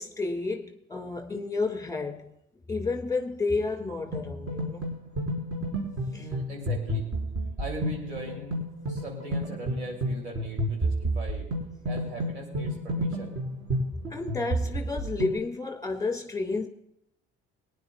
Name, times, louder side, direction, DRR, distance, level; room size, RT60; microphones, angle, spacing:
voice 1, 0.0-2.3 2.7-4.9 6.1-6.3 14.1-16.7, left 3 dB, 10° left, 2.0 m, -31 dB
sound 1, 4.1-15.4, right 1 dB, 45° right, 4.1 m, -31 dB
voice 2, 6.2-7.1 7.6-8.6 8.9-11.5 11.8-13.3 14.9-15.0, right 1 dB, 80° right, 2.9 m, -40 dB
23.5 x 10.0 x 2.3 m
figure-of-eight pair, 45°, 33 cm